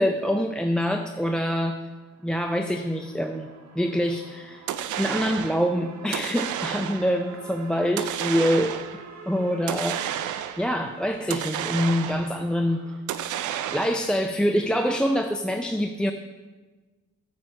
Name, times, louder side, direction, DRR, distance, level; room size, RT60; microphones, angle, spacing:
voice 1, 0.0-1.8 2.2-3.5 3.7-4.6 5.0-8.7 9.3-10.2 10.6-12.8 13.7-16.1, equal, 5° left, 6 dB, 0.5 m, -25 dB
sound 1, 1.8-13.0, right 5 dB, 65° right, 1.2 m, -46 dB
sound 2, 4.7-5.6 6.1-7.2 8.0-9.0 9.7-10.7 11.3-12.4 13.1-14.2, right 10 dB, 80° right, 0.6 m, -31 dB
9.1 x 6.4 x 6.3 m, 1.2 s
cardioid pair, 90°, 30 cm